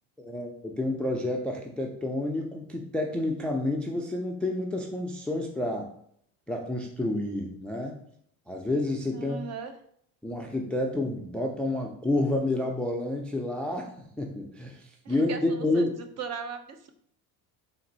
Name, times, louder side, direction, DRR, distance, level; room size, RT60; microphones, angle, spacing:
voice 1, 0.2-5.9 6.5-8.0 8.5-9.4 10.2-15.9, left 2 dB, 5° left, 1 dB, 0.4 m, -29 dB
voice 2, 9.1-9.7 15.0-15.9 16.2-16.6, right 6 dB, 40° right, 7 dB, 0.6 m, -37 dB
4.0 x 2.6 x 3.9 m, 0.66 s
supercardioid pair, 100°, 42 cm